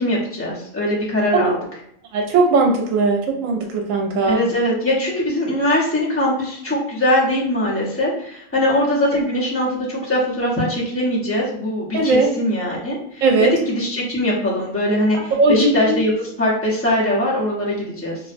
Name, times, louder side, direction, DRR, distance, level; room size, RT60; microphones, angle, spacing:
voice 1, 0.0-1.6 4.2-18.2, left 1 dB, 15° left, -7 dB, 0.6 m, -21 dB
voice 2, 2.1-4.4 11.9-12.3 13.2-13.5 15.4-16.0, right 3 dB, 80° right, 2 dB, 1.0 m, -18 dB
2.6 x 2.1 x 2.5 m, 0.69 s
omnidirectional pair, 1.4 m